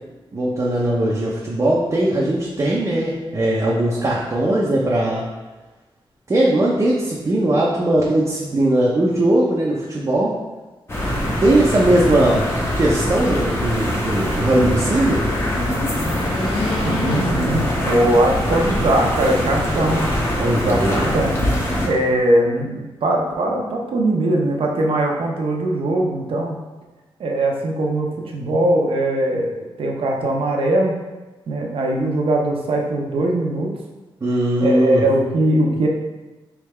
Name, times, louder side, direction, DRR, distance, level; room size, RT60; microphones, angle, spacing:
voice 1, 0.3-5.3 6.3-10.3 11.4-12.4 12.8-15.2 20.4-21.1 34.2-35.0, right 1 dB, 35° right, -5 dB, 0.6 m, -19 dB
sound 1, 10.9-21.9, equal, 25° left, 0.9 m, -23 dB
sound 2, 14.9-18.5 19.0-19.1 20.1-20.9, left 2 dB, 65° left, 0.9 m, -29 dB
voice 2, 16.8-26.6 27.2-31.0 31.5-33.7 34.6-35.9, right 1 dB, 70° right, 0 dB, 0.7 m, -21 dB
3.9 x 3.5 x 3.2 m, 1.2 s
wide cardioid pair, 115°, 10 cm